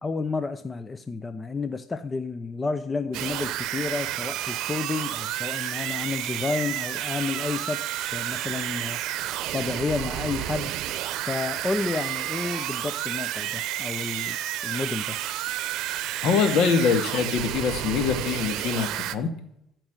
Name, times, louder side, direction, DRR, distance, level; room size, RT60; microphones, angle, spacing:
voice 1, 0.0-7.8 8.1-9.1 9.5-10.7 11.3-14.4 14.6-15.2, left 4 dB, 25° left, 0.8 m, -30 dB
sound 1, 3.1-19.2, right 13 dB, 70° right, 0.8 m, -31 dB
voice 2, 16.2-19.4, left 6 dB, 65° left, 2.1 m, -24 dB
14.0 x 6.1 x 8.2 m
supercardioid pair, 85°, 0 cm